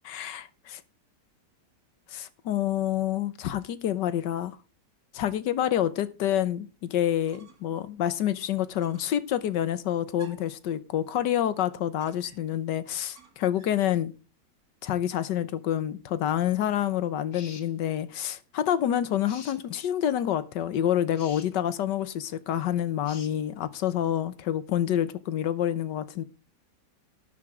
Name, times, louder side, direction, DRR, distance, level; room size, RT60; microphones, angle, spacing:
voice 1, 0.1-0.8 2.1-4.6 5.1-14.1 14.8-26.2, left 11 dB, 85° left, 1.5 m, -28 dB
sound 1, 7.3-7.8 8.1-8.2 8.7-9.2 10.2-10.6 12.0-12.6 13.2-13.9, right 3 dB, 55° right, 2.5 m, -54 dB
sound 2, 17.3-17.7 19.3-19.6 21.1-21.5 23.0-23.3, left 5 dB, 50° left, 1.6 m, -46 dB
12.0 x 9.0 x 3.7 m
omnidirectional pair, 1.8 m